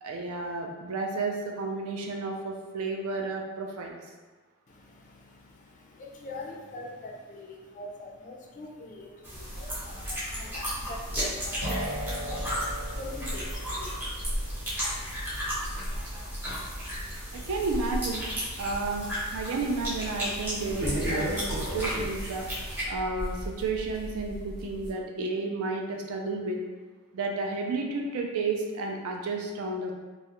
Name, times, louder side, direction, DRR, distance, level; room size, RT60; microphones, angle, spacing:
voice 1, 0.0-4.0 17.3-18.3 18.6-26.6 27.1-29.9, right 3 dB, 70° right, 1 dB, 0.4 m, -32 dB
voice 2, 4.7-14.5, left 2 dB, 35° left, -1 dB, 0.3 m, -44 dB
sound 1, 9.2-22.8, equal, 10° right, 0.6 m, -35 dB
sound 2, 9.4-24.9, equal, 50° right, 0.8 m, -37 dB
sound 3, 11.6-19.2, equal, 90° right, 1.1 m, -40 dB
2.3 x 2.0 x 2.8 m, 1.3 s
head